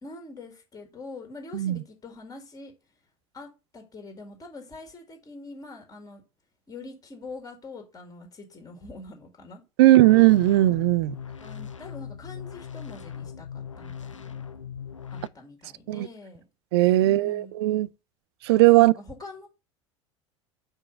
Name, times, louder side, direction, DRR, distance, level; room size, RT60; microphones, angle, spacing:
voice 1, 0.0-2.7 3.3-6.2 6.7-10.2 11.4-14.4 15.1-16.4 17.0-17.5 18.8-19.5, left 3 dB, 20° left, 1.8 m, -44 dB
voice 2, 9.8-11.2 15.9-16.1 16.7-17.9 18.4-18.9, right 17 dB, 55° right, 0.4 m, -18 dB
sound 1, 10.0-15.3, left 7 dB, 85° left, 0.5 m, -39 dB
4.8 x 3.7 x 5.6 m
figure-of-eight pair, 75°, 16 cm